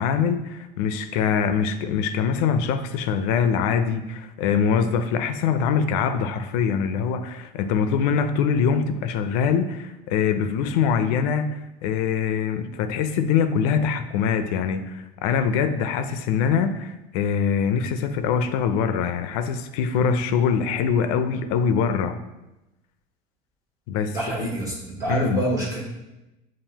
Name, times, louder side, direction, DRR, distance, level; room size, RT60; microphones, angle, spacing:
voice 1, 0.0-22.2 23.9-24.5 25.1-25.5, left 6 dB, 85° left, 10 dB, 0.4 m, -23 dB
voice 2, 24.1-24.7 25.0-25.8, right 1 dB, 20° right, -5 dB, 0.9 m, -26 dB
7.2 x 2.5 x 2.8 m, 0.97 s
cardioid pair, 150°, 19 cm